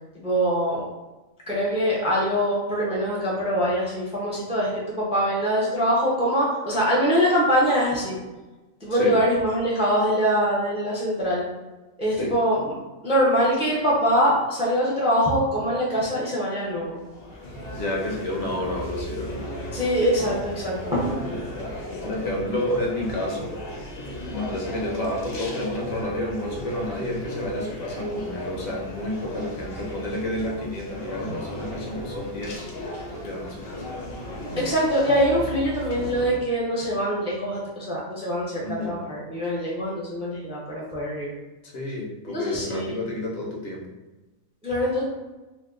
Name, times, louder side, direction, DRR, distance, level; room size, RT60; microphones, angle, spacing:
voice 1, 0.2-0.8 1.5-8.2 8.8-11.4 12.0-12.8 13.0-17.0 19.7-21.3 34.6-41.3 42.3-43.0 44.6-45.0, equal, 5° right, -5 dB, 0.6 m, -23 dB
sound 1, 16.6-36.4, equal, 55° left, 0.8 m, -36 dB
voice 2, 17.7-19.4 21.3-23.5 24.2-32.7 33.1-33.9 38.6-39.0 41.6-43.9, left 1 dB, 75° left, -2 dB, 1.2 m, -30 dB
2.8 x 2.3 x 3.6 m, 1.1 s
omnidirectional pair, 1.4 m